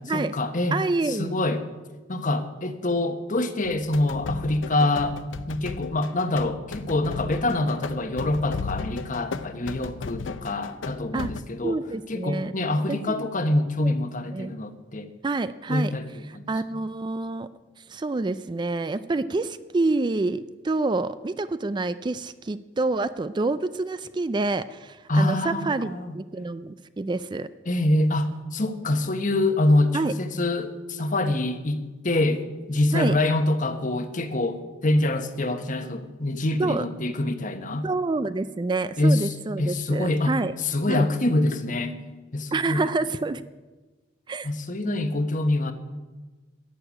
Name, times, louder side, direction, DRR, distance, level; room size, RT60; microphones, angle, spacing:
voice 1, 0.1-0.8 1.1-1.7 2.1-5.2 5.5-11.8 12.1-15.1 15.7-16.0 16.3-16.5 25.1-26.2 27.7-31.8 32.0-37.9 39.0-40.3 40.6-42.0 42.3-42.9 44.4-45.7, left 2 dB, 45° left, 9 dB, 1.1 m, -25 dB
voice 2, 0.7-1.4 11.1-11.3 11.6-12.5 12.9-13.3 13.8-13.9 14.3-14.5 15.2-15.9 16.5-17.5 17.8-27.5 29.9-30.1 32.9-33.2 36.6-36.9 37.8-40.5 40.9-41.0 42.5-43.4 44.3-44.5, right 3 dB, 25° right, 14 dB, 0.4 m, -27 dB
sound 1, 3.6-11.4, left 4 dB, 85° left, 0.6 m, -36 dB
14.0 x 6.8 x 10.0 m, 1.3 s
head